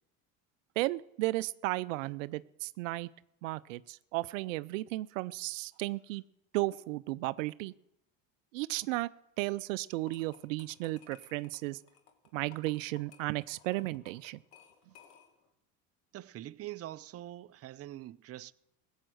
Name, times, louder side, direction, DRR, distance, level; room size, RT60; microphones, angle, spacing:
voice 1, 0.8-3.1 3.4-6.2 6.5-7.7 8.5-9.1 9.4-11.8 12.3-14.4, right 19 dB, 90° right, 0.5 m, -34 dB
sound 1, 9.9-15.5, left 8 dB, 70° left, 2.0 m, -59 dB
voice 2, 16.1-18.5, right 14 dB, 40° right, 0.6 m, -44 dB
16.0 x 7.3 x 7.7 m
supercardioid pair, 80°, 38 cm